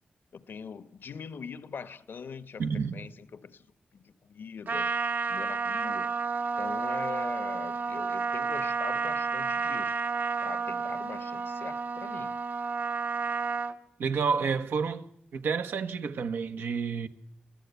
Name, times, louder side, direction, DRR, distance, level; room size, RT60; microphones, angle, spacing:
voice 1, 0.3-3.7 3.9-4.9 5.3-6.1 6.6-10.0 10.4-12.4, left 6 dB, 75° left, 1.1 m, -42 dB
voice 2, 2.6-3.0 14.0-15.0 15.3-17.1, right 5 dB, 90° right, 1.3 m, -29 dB
Trumpet, 4.7-13.7, right 4 dB, 65° right, 1.5 m, -31 dB
27.0 x 15.5 x 8.2 m
cardioid pair, 50°, 4 cm